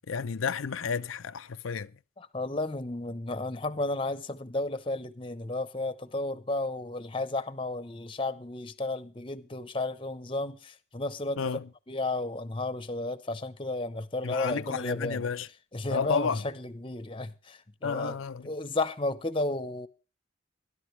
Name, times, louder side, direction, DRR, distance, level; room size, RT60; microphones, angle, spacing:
voice 1, 0.1-1.9 11.4-11.6 14.2-15.5 15.9-16.4 17.8-18.5, left 5 dB, 90° left, 0.6 m, -31 dB
voice 2, 2.2-11.5 11.9-15.2 15.7-19.9, left 2 dB, 25° left, 0.9 m, -33 dB
21.0 x 11.5 x 3.3 m
head